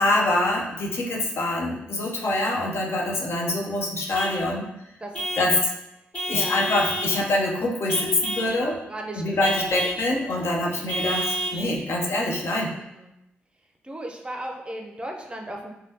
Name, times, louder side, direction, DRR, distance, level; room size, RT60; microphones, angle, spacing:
voice 1, 0.0-4.7 5.4-5.5 6.3-8.8 9.2-12.7, left 1 dB, 55° left, 0 dB, 0.6 m, -25 dB
Vehicle horn car horn honking / Truck, 4.1-4.4 5.1-5.5 6.1-7.2 7.9-8.5 9.4-10.0 10.9-11.6, equal, 25° left, 1.3 m, -29 dB
voice 2, 5.0-5.5 6.3-6.6 8.9-9.8 10.3-10.5 12.8-13.1 13.8-15.7, right 1 dB, 20° right, 2 dB, 0.5 m, -36 dB
3.2 x 2.3 x 2.7 m, 0.84 s
hypercardioid pair, 40°, 5 cm